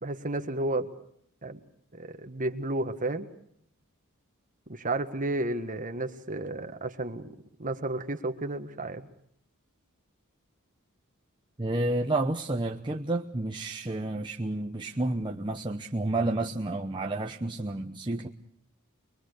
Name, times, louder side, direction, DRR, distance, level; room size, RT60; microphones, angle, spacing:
voice 1, 0.0-0.9 1.4-1.6 1.9-3.3 4.7-7.3 7.6-9.0, right 2 dB, 35° right, 7 dB, 1.6 m, -32 dB
voice 2, 11.6-18.3, right 2 dB, 20° right, 0 dB, 1.0 m, -30 dB
23.5 x 23.0 x 6.7 m, 0.70 s
head